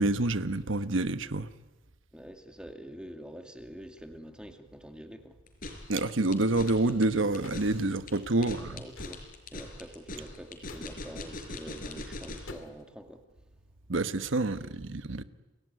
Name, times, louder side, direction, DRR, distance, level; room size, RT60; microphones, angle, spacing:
voice 1, 0.0-1.5 5.9-8.8 13.9-15.2, right 2 dB, 70° right, 1.1 m, -28 dB
voice 2, 2.1-5.4 8.3-9.2 9.5-13.2 14.4-14.8, equal, 5° right, 2.2 m, -46 dB
sound 1, 5.5-12.6, left 2 dB, 45° left, 4.8 m, -41 dB
sound 2, 7.4-7.7 8.9-9.2 10.6-11.0 12.5-12.9, left 2 dB, 75° left, 2.6 m, -46 dB
29.5 x 20.5 x 9.5 m
head